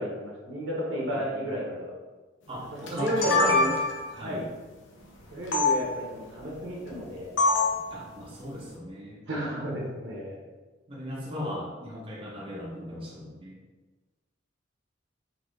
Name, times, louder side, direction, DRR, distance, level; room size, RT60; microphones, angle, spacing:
voice 1, 0.0-1.9 2.7-3.7 4.1-4.5 5.3-7.3 9.3-10.4, equal, 80° right, -3 dB, 1.1 m, -32 dB
voice 2, 1.1-1.7 2.5-3.7 4.2-4.5 7.9-9.2 10.9-13.6, equal, 30° right, -5 dB, 0.7 m, -38 dB
sound 1, 2.9-4.1 5.5-5.7 7.4-7.8, left 3 dB, 70° left, 0.7 m, -24 dB
4.0 x 2.8 x 3.3 m, 1.3 s
head